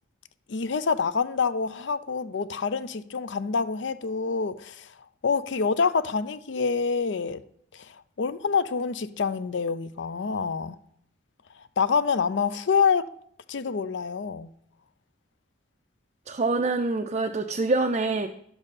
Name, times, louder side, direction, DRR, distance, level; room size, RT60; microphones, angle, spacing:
voice 1, 0.5-4.9 5.2-7.4 7.7-10.7 11.8-13.0 13.5-14.5, left 5 dB, 65° left, 0.5 m, -26 dB
voice 2, 16.3-18.3, right 3 dB, 35° right, 0.4 m, -25 dB
11.5 x 7.1 x 4.1 m
head